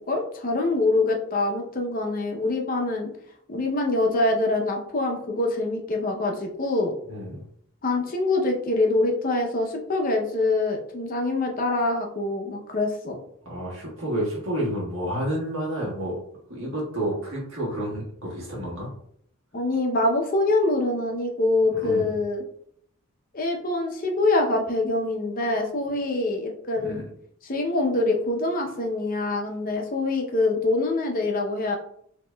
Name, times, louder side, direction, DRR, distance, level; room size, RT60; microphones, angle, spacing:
voice 1, 0.1-3.1 3.5-6.9 7.8-13.2 19.5-22.4 23.3-27.0 27.4-31.8, left 2 dB, 40° left, 2 dB, 0.6 m, -24 dB
voice 2, 7.1-7.4 13.4-16.2 16.5-18.9 21.7-22.1 26.8-27.0, right 1 dB, 60° right, -5 dB, 1.6 m, -30 dB
6.2 x 2.8 x 2.2 m, 0.68 s
head